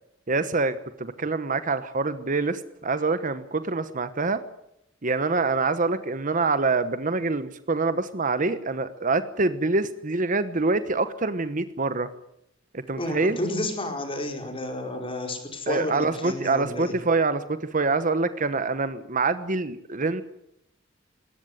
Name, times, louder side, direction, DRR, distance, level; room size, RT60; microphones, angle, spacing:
voice 1, 0.3-4.4 5.0-12.1 12.7-13.4 15.7-20.2, right 3 dB, 40° right, 12 dB, 1.1 m, -25 dB
voice 2, 12.9-17.0, left 1 dB, 30° left, 4 dB, 4.8 m, -31 dB
21.5 x 18.5 x 9.4 m, 0.79 s
head